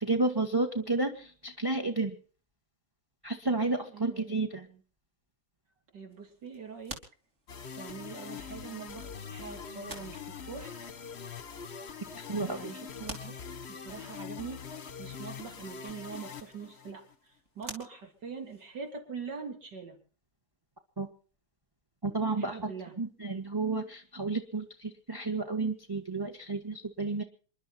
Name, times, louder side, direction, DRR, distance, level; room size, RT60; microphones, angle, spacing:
voice 1, 0.0-2.1 3.2-4.7 12.3-12.7 21.0-21.1 22.0-22.7 23.0-27.2, right 3 dB, 15° right, 7 dB, 1.4 m, -31 dB
voice 2, 3.9-4.4 4.7-4.8 5.9-7.0 7.7-10.7 12.4-13.4 13.7-20.0 22.3-23.0, right 5 dB, 55° right, 4 dB, 3.9 m, -43 dB
sound 1, 6.1-18.9, right 2 dB, 35° right, 3.7 m, -52 dB
sound 2, 7.5-17.1, left 6 dB, 40° left, 1.2 m, -43 dB
27.5 x 12.0 x 4.4 m, 0.41 s
omnidirectional pair, 2.2 m